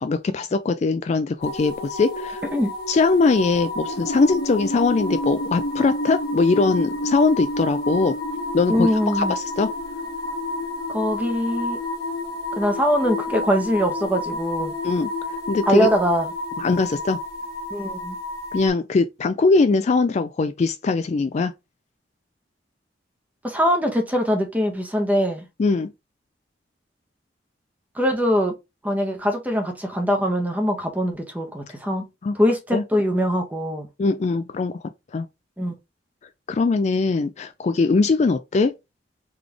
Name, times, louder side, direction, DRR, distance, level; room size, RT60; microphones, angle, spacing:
voice 1, 0.0-2.4 2.9-8.2 8.5-9.7 14.8-15.1 15.5-15.9 16.6-17.2 18.5-21.5 25.6-25.9 32.2-32.4 32.7-32.8 34.0-34.8 35.1-35.3 36.5-38.7, left 4 dB, 40° left, 0.3 m, -21 dB
sound 1, 1.4-18.7, left 1 dB, 55° left, 1.1 m, -30 dB
voice 2, 8.7-9.3 10.9-11.8 12.6-14.7 15.7-16.3 17.7-18.2 23.4-25.4 27.9-28.5 28.8-32.1 32.3-33.9 35.6-35.7, equal, 10° right, 1.0 m, -22 dB
3.9 x 3.3 x 3.4 m
head